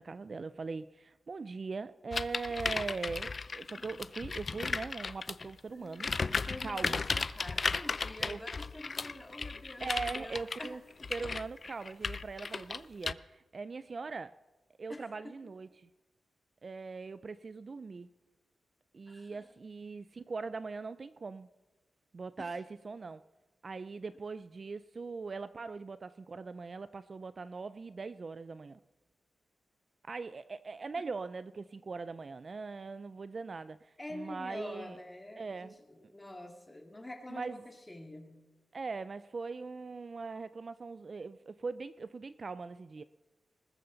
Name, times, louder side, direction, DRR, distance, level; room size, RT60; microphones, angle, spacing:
voice 1, 0.0-6.1 6.6-7.0 8.2-8.4 9.8-10.8 11.1-14.4 14.8-15.9 16.6-18.1 18.9-21.5 22.1-23.2 23.6-28.8 30.1-35.0 35.4-35.7 37.3-37.6 38.7-43.0, right 4 dB, 40° right, 14 dB, 0.3 m, -41 dB
sound 1, 2.1-5.5 5.9-13.1, left 4 dB, 40° left, 0.4 m, -35 dB
voice 2, 5.7-10.8 14.9-15.3 19.1-19.6 22.4-22.6 34.0-38.5, left 1 dB, 15° left, 3 dB, 2.0 m, -47 dB
20.0 x 13.5 x 3.9 m, 1.1 s
wide cardioid pair, 140°, 0 cm